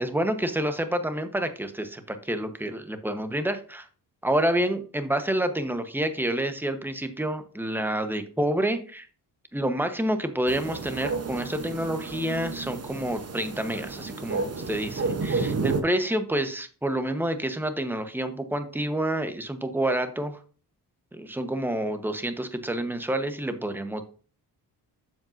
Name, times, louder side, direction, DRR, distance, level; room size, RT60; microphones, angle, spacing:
voice 1, 0.0-3.9 4.2-9.1 9.5-20.4 21.1-24.0, right 1 dB, 5° right, 8 dB, 1.1 m, -28 dB
sound 1, 10.5-15.8, right 4 dB, 40° right, 1.0 m, -31 dB
7.5 x 7.2 x 2.7 m, 0.39 s
cardioid pair, 75°, 40 cm